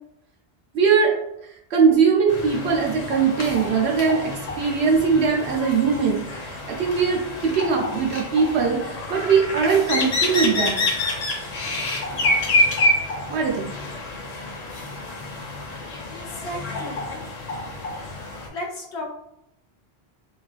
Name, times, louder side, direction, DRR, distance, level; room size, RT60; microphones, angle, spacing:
voice 1, 0.7-1.1 1.7-4.3 4.6-10.9 13.3-13.7, right 5 dB, 80° right, -1 dB, 0.9 m, -21 dB
sound 1, 2.3-18.5, left 2 dB, 50° left, 0.5 m, -28 dB
voice 2, 16.3-17.7 18.5-19.1, left 1 dB, 90° left, -1 dB, 1.0 m, -35 dB
3.0 x 2.4 x 2.3 m, 0.78 s
omnidirectional pair, 1.1 m